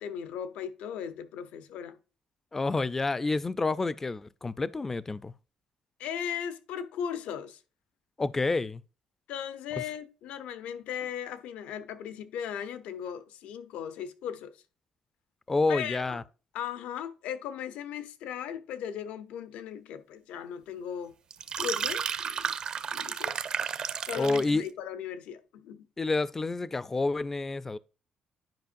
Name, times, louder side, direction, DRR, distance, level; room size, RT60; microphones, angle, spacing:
voice 1, 0.0-2.0 6.0-7.6 9.3-14.5 15.7-16.2 16.5-21.1 21.6-22.5 22.9-23.3 24.0-25.9, left 8 dB, 85° left, 0.7 m, -37 dB
voice 2, 2.5-5.3 8.2-8.8 15.5-16.2 24.1-24.6 26.0-27.8, left 3 dB, 15° left, 0.3 m, -28 dB
sound 1, 21.3-24.6, right 7 dB, 40° right, 0.5 m, -32 dB
10.5 x 5.1 x 2.5 m
cardioid pair, 155°, 2 cm